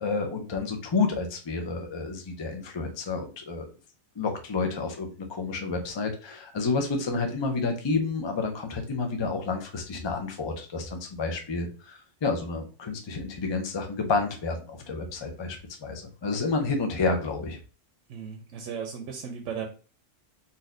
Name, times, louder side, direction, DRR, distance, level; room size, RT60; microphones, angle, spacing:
voice 1, 0.0-3.7 4.2-17.6, left 4 dB, 35° left, 4 dB, 0.5 m, -30 dB
voice 2, 18.1-19.7, right 7 dB, 85° right, 3 dB, 0.9 m, -36 dB
4.1 x 2.7 x 2.5 m, 0.36 s
omnidirectional pair, 1.2 m